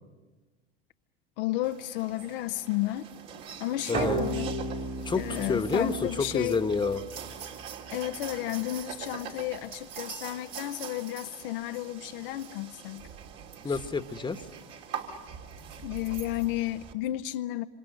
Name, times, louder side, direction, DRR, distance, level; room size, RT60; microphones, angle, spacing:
voice 1, 1.4-3.1 3.6-4.6 5.1-6.6 7.9-13.1 13.7-13.8 15.8-17.6, left 15 dB, 70° left, 0.7 m, -32 dB
sound 1, 1.6-16.9, right 7 dB, 60° right, 3.1 m, -43 dB
voice 2, 3.9-4.2 5.0-5.2 5.5-7.0 13.6-14.4, left 4 dB, 15° left, 1.3 m, -28 dB
sound 2, 3.9-7.4, right 3 dB, 35° right, 2.6 m, -34 dB
26.5 x 26.0 x 6.6 m
hypercardioid pair, 90°, 29 cm